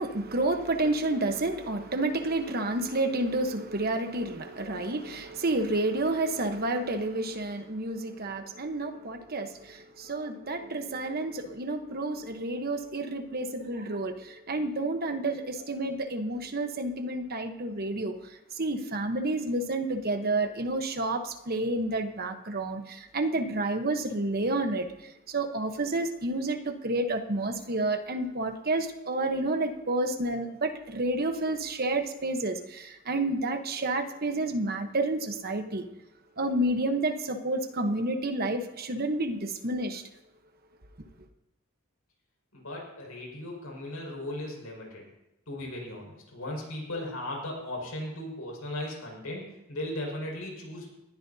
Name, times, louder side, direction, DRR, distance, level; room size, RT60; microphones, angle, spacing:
voice 1, 0.0-35.8 36.4-40.0, right 2 dB, 45° right, 7 dB, 1.1 m, -30 dB
voice 2, 42.5-45.1 45.5-51.0, left 1 dB, 80° left, -1 dB, 5.5 m, -37 dB
20.0 x 14.5 x 2.8 m, 0.92 s
head